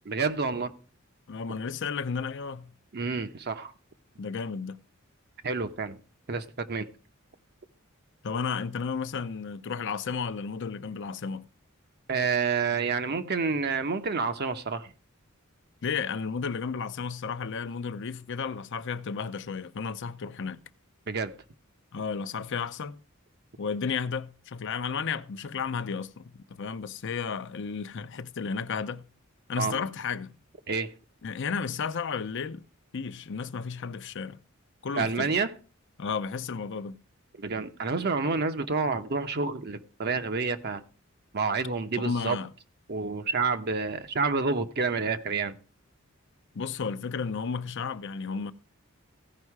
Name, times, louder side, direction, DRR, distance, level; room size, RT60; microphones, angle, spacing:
voice 1, 0.1-0.7 2.9-3.7 5.4-6.0 6.3-6.9 12.1-14.9 21.1-21.3 29.6-29.8 30.7-30.9 35.0-35.5 37.4-40.8 41.3-42.4 42.9-45.6, right 4 dB, 50° right, 0.8 m, -29 dB
voice 2, 1.3-2.7 4.2-4.8 8.2-11.4 15.8-20.6 21.9-23.0 23.6-29.1 29.5-30.3 31.2-32.6 32.9-34.4 34.8-35.3 36.0-37.0 42.0-42.5 46.5-48.5, left 5 dB, 60° left, 0.6 m, -33 dB
15.5 x 5.5 x 4.7 m
head